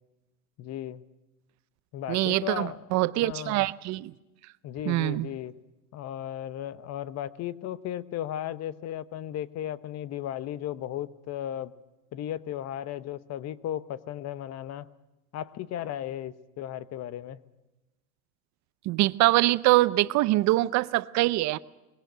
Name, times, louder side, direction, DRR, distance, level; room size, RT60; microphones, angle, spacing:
voice 1, 0.6-1.0 1.9-2.8 3.2-3.6 4.6-5.5 5.9-11.7 12.1-14.9 15.3-17.4, left 11 dB, 40° left, 1.0 m, -35 dB
voice 2, 2.1-4.1 4.9-5.3 18.9-21.6, right 18 dB, 40° right, 0.6 m, -24 dB
20.5 x 17.5 x 7.9 m
supercardioid pair, 110°, 42 cm